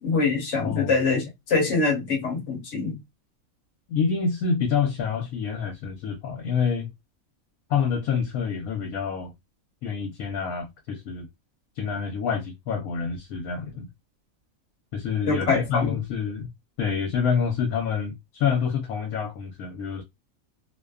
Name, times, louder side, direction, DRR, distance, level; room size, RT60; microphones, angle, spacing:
voice 1, 0.0-3.0 15.2-16.0, left 4 dB, 60° left, 1.1 m, -24 dB
voice 2, 0.6-0.9 3.9-6.9 7.7-9.3 9.8-11.3 11.8-13.9 14.9-16.5 16.8-20.0, left 6 dB, 75° left, 1.1 m, -27 dB
2.7 x 2.1 x 2.3 m
omnidirectional pair, 1.5 m